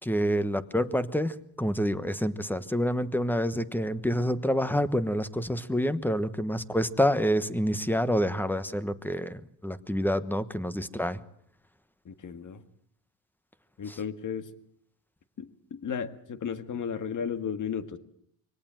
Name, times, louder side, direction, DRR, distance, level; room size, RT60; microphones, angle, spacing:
voice 1, 0.0-11.2 13.9-14.0, equal, 5° left, 13 dB, 1.1 m, -28 dB
voice 2, 12.0-12.6 13.8-14.5 15.4-18.0, left 7 dB, 45° left, 10 dB, 1.8 m, -34 dB
24.0 x 18.0 x 7.6 m, 0.67 s
cardioid pair, 105°, 43 cm